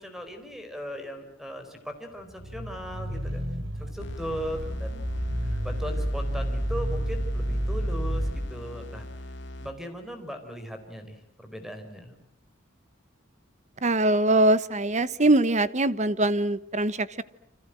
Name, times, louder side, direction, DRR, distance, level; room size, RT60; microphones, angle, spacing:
voice 1, 0.0-3.4 3.8-5.1 5.6-9.1 9.6-12.2, equal, ahead, 7 dB, 4.4 m, -38 dB
sound 1, 2.3-8.4, equal, 75° right, 5.1 m, -30 dB
sound 2, 4.0-10.0, left 1 dB, 60° left, 2.3 m, -41 dB
voice 2, 13.8-17.2, right 2 dB, 35° right, 15 dB, 1.1 m, -22 dB
29.0 x 26.0 x 7.7 m, 0.74 s
head